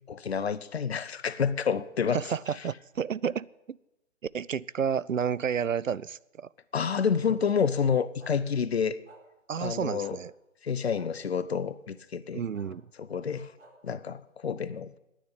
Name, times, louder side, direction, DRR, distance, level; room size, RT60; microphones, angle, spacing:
voice 1, 0.1-2.2 6.7-9.0 9.6-10.2 10.6-12.4 13.0-13.5 13.8-15.0, left 6 dB, 55° left, 0.8 m, -29 dB
voice 2, 2.1-3.8 4.3-6.5 9.5-10.3 12.3-12.9, right 7 dB, 80° right, 0.5 m, -31 dB
sound 1, 8.2-8.3 9.0-9.2 10.0-10.1 11.0-11.1 12.5-12.7 13.6-13.7, right 3 dB, 60° right, 4.1 m, -53 dB
10.0 x 9.5 x 9.9 m
figure-of-eight pair, 140°, 39 cm